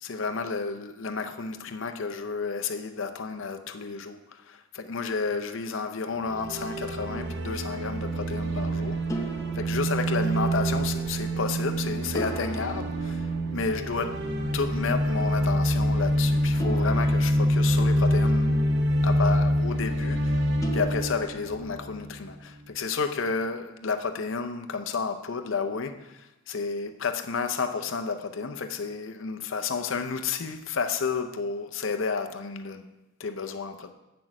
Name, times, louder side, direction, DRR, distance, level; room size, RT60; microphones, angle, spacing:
voice 1, 0.0-9.0 9.5-14.2 14.5-18.6 19.0-20.5 20.7-32.8 33.2-33.9, left 4 dB, 60° left, 0.6 m, -31 dB
sound 1, 6.2-22.3, equal, 55° right, 0.8 m, -26 dB
sound 2, 9.1-10.6 12.1-14.1 16.6-18.3 20.6-21.8, right 2 dB, 15° left, 0.6 m, -39 dB
7.7 x 6.1 x 6.0 m
head